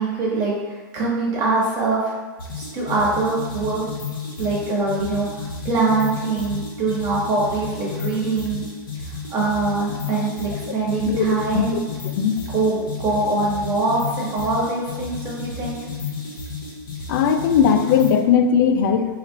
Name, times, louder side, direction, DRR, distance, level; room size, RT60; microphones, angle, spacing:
voice 1, 0.0-2.1 2.5-3.8 4.4-8.6 9.3-11.8 12.3-15.8, right 3 dB, 35° right, -5 dB, 1.4 m, -23 dB
sound 1, 2.4-18.2, left 4 dB, 80° left, 1.1 m, -32 dB
voice 2, 11.5-12.3 17.1-19.1, left 7 dB, 65° left, 7 dB, 0.4 m, -19 dB
3.0 x 2.5 x 4.0 m, 1.4 s
hypercardioid pair, 120°, 11 cm